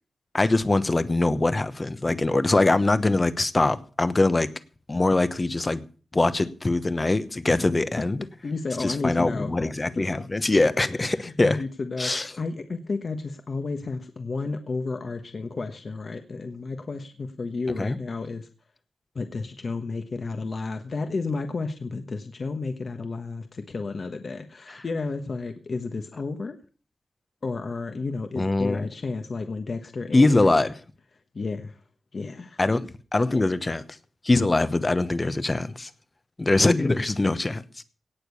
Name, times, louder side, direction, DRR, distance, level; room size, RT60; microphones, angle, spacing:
voice 1, 0.3-4.5 4.9-5.8 6.1-8.2 8.8-11.6 12.0-12.3 17.8-18.0 28.4-28.9 30.1-30.7 32.6-33.8 34.2-35.9 36.4-37.6, left 2 dB, 25° left, 13 dB, 1.0 m, -23 dB
voice 2, 8.4-9.5 9.9-10.0 11.1-18.5 19.1-26.6 27.4-30.5 31.3-31.8 32.1-32.6, left 3 dB, 45° left, 6 dB, 1.2 m, -32 dB
18.0 x 6.8 x 6.9 m, 0.40 s
wide cardioid pair, 140°, 0 cm